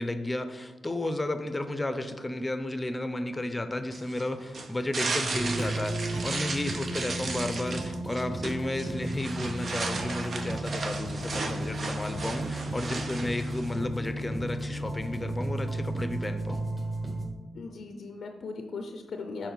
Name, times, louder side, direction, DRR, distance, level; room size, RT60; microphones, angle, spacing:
voice 1, 0.0-16.6, left 1 dB, 20° left, 10 dB, 0.6 m, -33 dB
sound 1, 3.9-13.8, right 3 dB, 55° right, 0.6 m, -35 dB
sound 2, 5.3-17.3, right 1 dB, 20° right, 1.6 m, -34 dB
voice 2, 17.5-19.5, left 4 dB, 65° left, 4 dB, 0.5 m, -38 dB
6.8 x 4.2 x 4.0 m, 1.3 s
hypercardioid pair, 45°, 0 cm